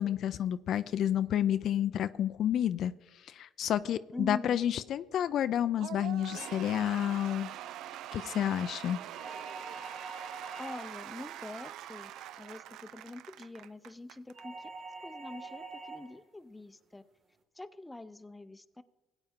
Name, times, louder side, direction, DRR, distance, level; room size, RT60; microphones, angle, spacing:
voice 1, 0.0-2.9 3.3-7.5 8.1-9.0, left 10 dB, 65° left, 13 dB, 0.4 m, -30 dB
voice 2, 4.1-4.6 10.6-12.1 12.4-14.7 15.0-17.0 17.6-18.8, left 2 dB, 15° left, 12 dB, 0.6 m, -44 dB
Cheering / Applause / Crowd, 5.8-14.4, right 12 dB, 75° right, 0.3 m, -44 dB
sound 1, 9.1-11.1 14.3-16.2, right 3 dB, 60° right, 1.7 m, -45 dB
16.5 x 8.9 x 3.7 m, 1.2 s
supercardioid pair, 80°, 0 cm